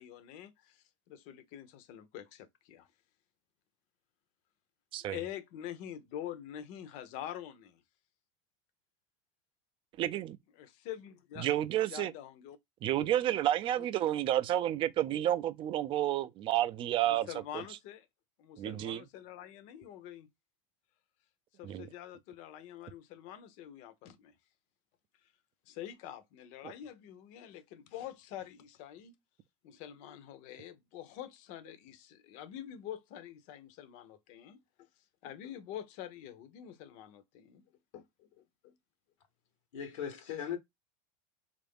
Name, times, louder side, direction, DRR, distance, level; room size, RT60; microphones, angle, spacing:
voice 1, 0.0-2.9 5.0-7.8 10.6-11.5 11.8-12.6 14.0-14.1 17.0-18.1 18.4-20.3 21.6-24.3 25.7-29.2 29.6-34.9 35.2-37.6 37.9-38.8, left 11 dB, 55° left, 0.7 m, -46 dB
voice 2, 10.0-10.4 11.4-12.1 12.8-17.3 18.6-19.0 21.6-21.9, right 12 dB, 35° right, 0.4 m, -30 dB
voice 3, 39.7-40.6, left 8 dB, 85° left, 1.0 m, -38 dB
3.6 x 2.5 x 3.4 m
supercardioid pair, 130°, 16 cm